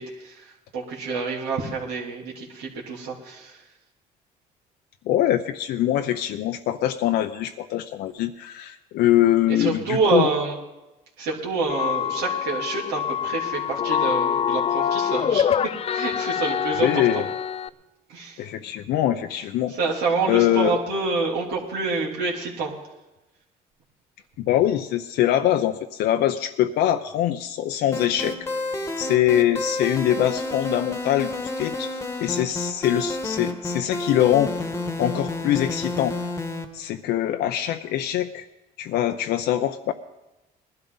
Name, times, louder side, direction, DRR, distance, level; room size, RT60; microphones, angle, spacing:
voice 1, 0.0-3.6 9.5-10.5 11.2-15.5 15.9-17.3 18.1-18.5 19.7-22.7, right 4 dB, 85° right, -3 dB, 3.0 m, -27 dB
voice 2, 5.1-10.3 16.8-17.3 18.4-19.7 20.3-20.8 24.4-28.4 29.0-34.5 35.0-36.2 36.7-38.4 38.8-39.9, left 12 dB, 75° left, 6 dB, 0.7 m, -23 dB
sound 1, 11.7-17.7, left 8 dB, 35° left, 0.5 m, -25 dB
sound 2, 27.9-36.6, left 2 dB, 15° left, 1.3 m, -30 dB
20.0 x 12.0 x 4.0 m, 1.0 s
cardioid pair, 110°, 17 cm